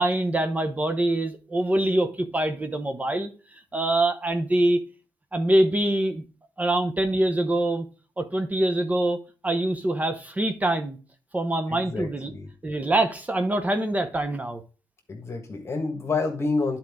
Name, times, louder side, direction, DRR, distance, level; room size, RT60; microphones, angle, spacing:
voice 1, 0.0-3.3 3.7-4.8 5.3-6.2 6.6-7.9 8.2-9.2 9.4-11.0 11.3-12.3 12.6-14.6, right 1 dB, 20° right, 0.8 m, -24 dB
voice 2, 11.7-12.5 15.1-16.8, left 3 dB, 35° left, 1.5 m, -28 dB
10.0 x 4.4 x 3.6 m
cardioid pair, 100°, 8 cm